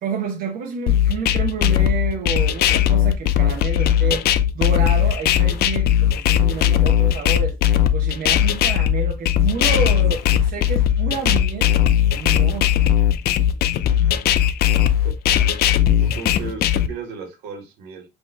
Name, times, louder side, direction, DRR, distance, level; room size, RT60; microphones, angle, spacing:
voice 1, 0.0-4.3 4.5-7.6 7.9-11.8 12.1-12.7, right 5 dB, 60° right, 0.9 m, -29 dB
sound 1, 0.9-16.9, left 10 dB, 70° left, 0.5 m, -18 dB
voice 2, 16.0-18.0, right 5 dB, 85° right, 1.8 m, -35 dB
5.5 x 3.0 x 3.2 m
cardioid pair, 110°, 17 cm